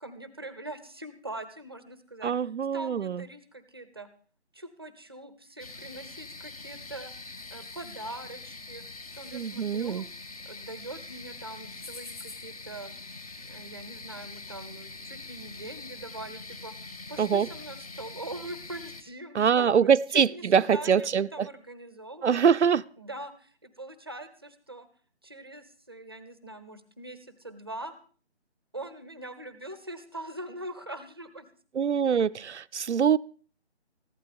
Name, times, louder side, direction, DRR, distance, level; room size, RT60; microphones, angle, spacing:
voice 1, 0.0-2.3 2.7-4.1 4.5-7.1 7.5-8.8 9.1-10.0 10.4-13.0 13.4-16.7 17.1-22.4 23.0-24.9 25.2-27.9 28.7-31.5, right 1 dB, 20° right, 0.7 m, -42 dB
voice 2, 2.2-3.2 9.3-10.1 17.2-17.5 19.4-21.5 22.2-22.8 31.8-33.2, right 7 dB, 80° right, 0.6 m, -24 dB
sound 1, 5.6-19.0, left 3 dB, 35° left, 1.2 m, -44 dB
15.0 x 11.5 x 5.2 m
figure-of-eight pair, 165°, 34 cm